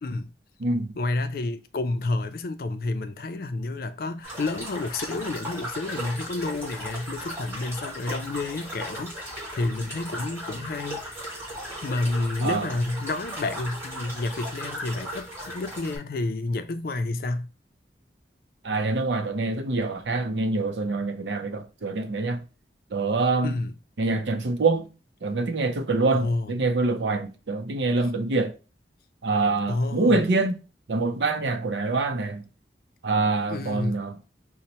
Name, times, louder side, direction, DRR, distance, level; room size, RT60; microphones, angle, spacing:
voice 1, 0.0-0.3 1.0-11.0 11.8-17.5 23.4-23.7 26.1-26.5 29.7-30.2 33.5-34.0, left 2 dB, 55° left, 0.4 m, -30 dB
voice 2, 0.6-1.0 12.4-12.7 18.6-22.4 22.9-23.5 24.0-24.9 25.2-28.5 29.2-30.6 30.9-32.4 33.0-34.2, right 3 dB, 85° right, 0.6 m, -25 dB
sound 1, 4.2-16.0, equal, 15° right, 1.7 m, -37 dB
5.3 x 2.1 x 2.9 m
head